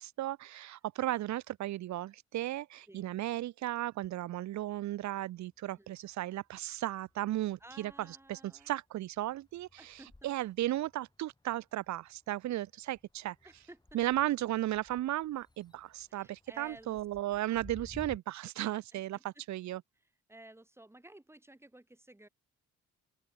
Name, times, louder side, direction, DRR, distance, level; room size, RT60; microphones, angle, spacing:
voice 1, 0.0-10.0 10.2-13.4 13.9-19.8, right 14 dB, 65° right, 0.7 m, -35 dB
sound 1, 4.9-6.1 6.5-18.2, left 2 dB, 15° left, 3.7 m, -58 dB
voice 2, 5.6-6.0 7.6-8.7 9.8-10.1 13.4-14.0 16.1-17.3 18.9-19.4 20.3-22.3, right 1 dB, 10° right, 3.4 m, -55 dB
open air
cardioid pair, 90°, 30 cm